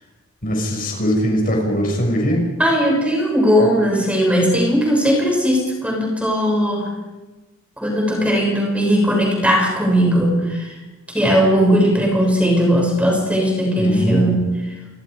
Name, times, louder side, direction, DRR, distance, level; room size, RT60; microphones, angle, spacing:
voice 1, 0.4-2.5 13.8-14.3, equal, 45° left, 1 dB, 6.3 m, -20 dB
voice 2, 2.6-6.9 7.8-10.7 11.1-14.5, equal, 5° right, -1 dB, 6.7 m, -18 dB
29.5 x 25.5 x 5.1 m, 1.2 s
head